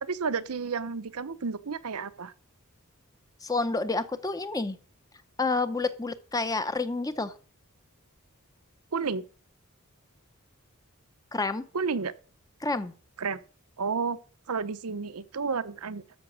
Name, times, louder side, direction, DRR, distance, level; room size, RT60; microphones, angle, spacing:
voice 1, 0.0-2.3 8.9-9.2 11.7-12.1 13.2-13.4 13.8-14.2 14.5-16.0, right 5 dB, 85° right, 0.8 m, -31 dB
voice 2, 3.4-4.8 5.4-7.3 11.3-11.6 12.6-12.9, left 3 dB, 15° left, 0.6 m, -29 dB
13.5 x 5.8 x 6.3 m
head